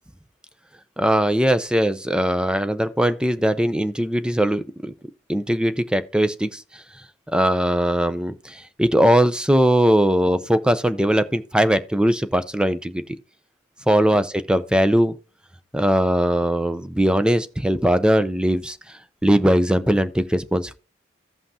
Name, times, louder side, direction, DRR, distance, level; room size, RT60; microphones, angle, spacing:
voice 1, 1.0-4.9 5.3-6.8 7.3-13.0 13.9-15.2 15.7-18.8 19.2-20.7, equal, 5° right, 0.5 m, -20 dB
15.5 x 5.7 x 2.8 m
head